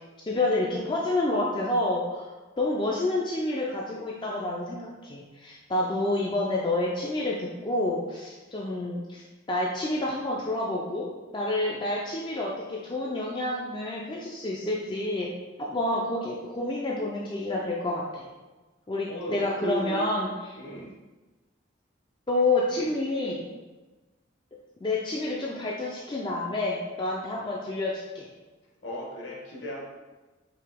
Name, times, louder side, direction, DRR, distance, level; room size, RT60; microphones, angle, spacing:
voice 1, 0.3-2.3 2.6-15.3 15.6-18.2 18.9-20.6 22.3-23.5 24.8-28.3, left 2 dB, 25° left, -3 dB, 0.4 m, -29 dB
voice 2, 19.1-20.0 20.5-20.9 28.8-29.8, right 1 dB, 65° left, -2 dB, 1.0 m, -35 dB
4.8 x 2.8 x 3.5 m, 1.2 s
head